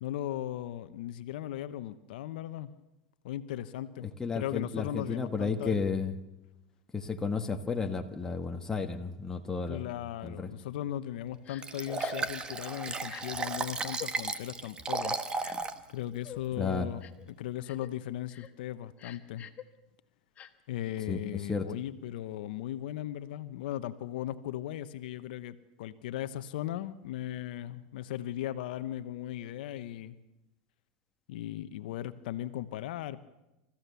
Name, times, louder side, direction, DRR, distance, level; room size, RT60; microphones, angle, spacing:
voice 1, 0.0-2.7 3.2-5.8 9.7-15.2 15.9-17.0 17.3-19.5 20.7-30.2 31.3-33.3, left 12 dB, 75° left, 12 dB, 0.9 m, -37 dB
voice 2, 4.2-6.2 6.9-9.8 10.2-10.5 16.6-16.9 21.1-21.7, left 5 dB, 10° left, 4 dB, 1.5 m, -32 dB
Crying sobbing, 11.5-11.6 12.0-12.3 13.0-13.2 13.9-14.1 15.0-15.7 16.2-16.4 17.0-17.3 17.6-17.9 18.3-18.5 19.0-19.6 20.4-20.5, left 10 dB, 30° left, 1.2 m, -47 dB
Liquid, 11.6-15.8 16.3-16.4, right 4 dB, 20° right, 1.2 m, -34 dB
27.0 x 15.0 x 7.0 m, 0.97 s
supercardioid pair, 135°, 5 cm